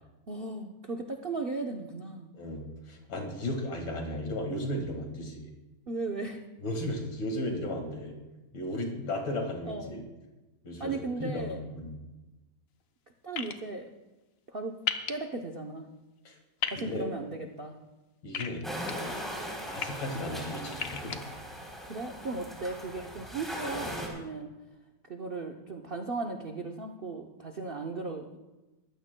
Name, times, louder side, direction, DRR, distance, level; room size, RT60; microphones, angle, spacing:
voice 1, 0.3-2.3 5.9-6.4 9.7-9.9 10.8-11.6 13.2-13.9 14.5-14.8 15.1-15.9 16.7-17.8 21.8-24.5 25.1-28.4, right 3 dB, 60° right, 3 dB, 0.5 m, -36 dB
voice 2, 2.3-5.5 6.6-8.1 8.5-10.0 10.6-11.9 16.2-16.3 16.8-17.0 18.2-18.6 19.7-21.2, left 1 dB, 85° left, 2 dB, 2.7 m, -35 dB
sound 1, 13.4-13.5 14.9-15.1 16.6-16.8 18.3-18.9 19.6-19.9 20.7-21.2, left 8 dB, 55° left, 1.0 m, -32 dB
sound 2, 18.6-24.1, equal, ahead, 3.2 m, -39 dB
21.5 x 15.0 x 2.2 m, 1.1 s
omnidirectional pair, 2.0 m